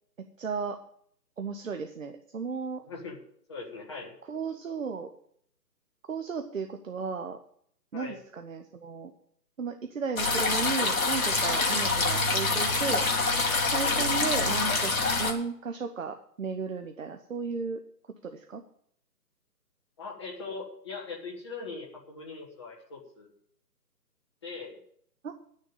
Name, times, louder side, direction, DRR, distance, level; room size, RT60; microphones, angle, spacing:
voice 1, 0.2-0.8 1.4-2.8 4.3-5.1 6.1-7.4 7.9-9.1 9.6-13.1 13.7-17.8 18.2-18.6 25.2-25.3, right 5 dB, 50° right, 6 dB, 1.0 m, -34 dB
voice 2, 3.5-4.1 7.9-8.2 11.8-12.0 13.8-14.0 20.0-23.3 24.4-24.8, left 4 dB, 15° left, -3 dB, 1.5 m, -40 dB
sound 1, 10.2-15.3, left 3 dB, 55° left, 2.3 m, -26 dB
11.0 x 6.6 x 8.9 m, 0.65 s
hypercardioid pair, 170°, 50 cm